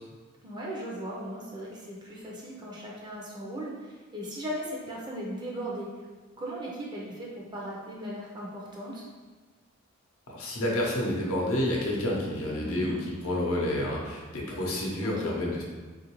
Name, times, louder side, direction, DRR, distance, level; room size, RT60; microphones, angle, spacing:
voice 1, 0.4-5.9 6.4-9.0 12.5-13.0 15.0-15.4, equal, 20° right, -4 dB, 0.5 m, -37 dB
voice 2, 10.3-13.0 13.2-15.6, left 1 dB, 90° left, -3 dB, 0.7 m, -29 dB
3.4 x 2.5 x 2.9 m, 1.3 s
head